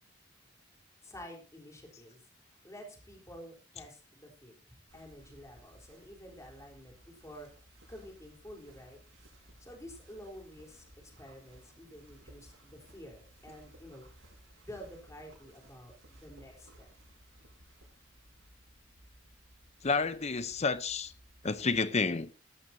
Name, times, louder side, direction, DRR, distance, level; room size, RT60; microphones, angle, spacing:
voice 1, 1.0-2.2 2.6-7.5 7.9-9.0 9.6-14.1 14.6-16.9, equal, 15° left, 3.9 m, -50 dB
sound 1, 4.9-21.8, right 1 dB, 80° right, 6.2 m, -59 dB
voice 2, 19.8-21.1 21.4-22.3, left 4 dB, 35° left, 0.7 m, -30 dB
18.0 x 12.5 x 2.8 m
head